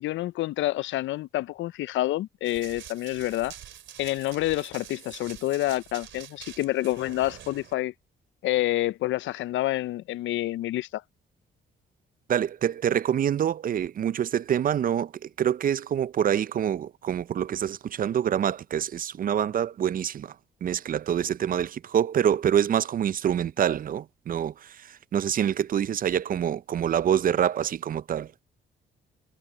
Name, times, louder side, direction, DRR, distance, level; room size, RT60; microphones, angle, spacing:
voice 1, 0.0-3.5 4.0-7.9 8.4-11.0, left 16 dB, 75° left, 0.4 m, -28 dB
Run, 2.4-7.7, right 10 dB, 70° right, 3.4 m, -46 dB
voice 2, 12.3-20.4 20.6-28.3, right 9 dB, 45° right, 0.5 m, -26 dB
cardioid pair, 90°, 20 cm